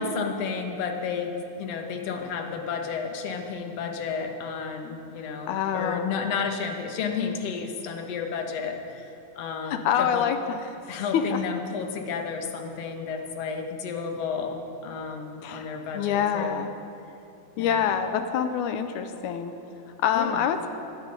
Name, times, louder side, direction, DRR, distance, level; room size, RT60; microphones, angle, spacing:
voice 1, 0.0-10.3 10.9-16.6 17.6-17.8 20.2-20.4, left 5 dB, 60° left, 3 dB, 2.1 m, -32 dB
voice 2, 5.5-6.1 9.9-11.4 15.4-16.7 17.6-19.5 20.0-20.7, left 8 dB, 90° left, 7 dB, 2.1 m, -26 dB
17.5 x 11.5 x 5.2 m, 2.8 s
omnidirectional pair, 3.5 m